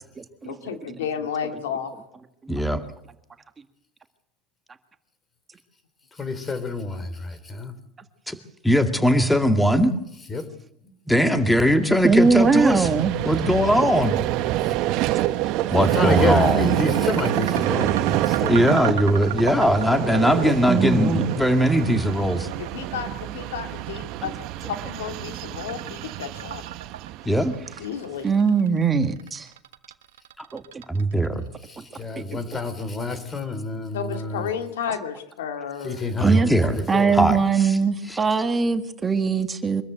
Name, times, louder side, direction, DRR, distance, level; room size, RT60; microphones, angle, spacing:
voice 1, 0.4-1.9 15.7-15.9 22.6-24.3 24.7-26.6 27.8-28.4 33.9-36.1, left 7 dB, 85° left, 5 dB, 2.5 m, -32 dB
voice 2, 2.5-2.8 8.3-8.4 8.6-9.9 11.1-12.9 13.3-14.2 15.7-16.6 18.5-22.5 27.2-27.5 30.4-30.5 30.9-31.5 36.2-36.8 37.1-37.8 38.1-38.2, equal, 5° left, 6 dB, 2.2 m, -20 dB
voice 3, 6.1-7.8 10.3-10.5 10.8-10.9 14.6-14.7 15.7-18.7 31.6-34.5 35.8-37.2, left 3 dB, 25° left, 13 dB, 3.7 m, -29 dB
Vehicle, 11.6-28.0, right 14 dB, 60° right, 1.0 m, -27 dB
voice 4, 12.0-13.1 15.1-15.3 20.7-21.3 24.2-24.3 28.2-29.5 30.5-30.8 32.1-32.2 36.2-36.5 36.9-39.8, right 5 dB, 25° right, 7 dB, 1.8 m, -21 dB
sound 1, 15.3-31.5, right 13 dB, 85° right, 1.1 m, -37 dB
24.5 x 13.5 x 8.0 m, 0.78 s
hypercardioid pair, 90°, 0 cm